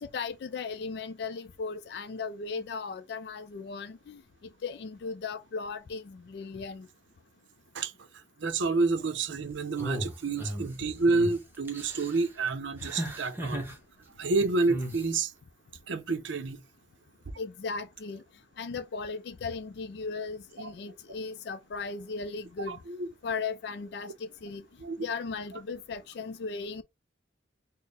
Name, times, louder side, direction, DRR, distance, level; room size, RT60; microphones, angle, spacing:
voice 1, 0.0-4.2 4.6-6.9 17.4-18.2 18.6-22.8 23.2-24.6 25.0-26.8, left 4 dB, 60° left, 0.3 m, -37 dB
voice 2, 8.4-13.7 14.2-15.3 15.9-16.6 20.6-20.7 22.7-23.1 24.8-25.0, right 3 dB, 75° right, 0.6 m, -29 dB
sound 1, 9.8-10.7 11.1-11.3 11.7-12.2 12.8-13.8 14.7-15.0, equal, 10° right, 0.8 m, -35 dB
4.2 x 2.1 x 3.4 m
head